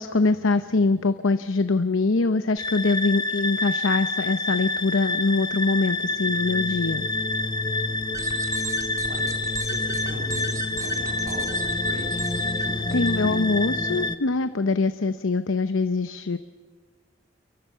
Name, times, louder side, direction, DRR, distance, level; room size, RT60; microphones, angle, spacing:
voice 1, 0.0-7.1 12.9-16.4, left 3 dB, 80° left, 11 dB, 0.8 m, -23 dB
sound 1, 2.6-14.2, left 2 dB, 20° left, 0.8 m, -27 dB
sound 2, 8.0-13.1, right 2 dB, 15° right, 2.0 m, -37 dB
voice 2, 9.0-13.4, right 1 dB, 50° right, 2 dB, 3.9 m, -40 dB
29.0 x 23.0 x 5.7 m, 1.4 s
head